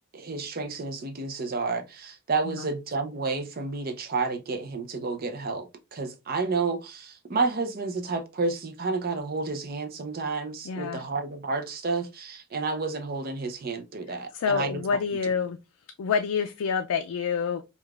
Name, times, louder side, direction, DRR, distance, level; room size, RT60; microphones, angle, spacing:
voice 1, 0.1-14.8, right 4 dB, 45° right, 0.5 m, -30 dB
voice 2, 10.6-11.0 14.1-15.6 16.0-17.7, left 6 dB, 80° left, 0.3 m, -28 dB
4.8 x 2.3 x 2.3 m
head